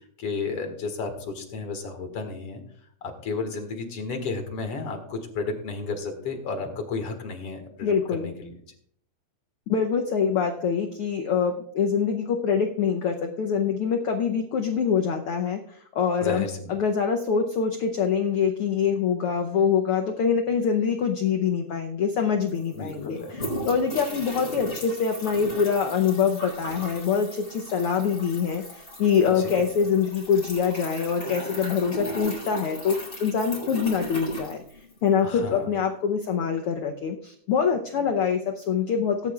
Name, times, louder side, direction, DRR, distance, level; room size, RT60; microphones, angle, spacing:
voice 1, 0.2-2.6 3.0-8.5 16.2-16.7 22.7-23.4 29.4-29.6 35.2-35.7, left 4 dB, 50° left, 4 dB, 2.5 m, -33 dB
voice 2, 7.8-8.3 9.7-15.6 15.9-34.6 35.0-39.3, left 6 dB, 90° left, 3 dB, 1.2 m, -25 dB
sound 1, 22.1-22.2 22.4-35.2, right 1 dB, 20° left, 4.4 m, -37 dB
18.5 x 9.9 x 2.4 m, 0.65 s
omnidirectional pair, 3.5 m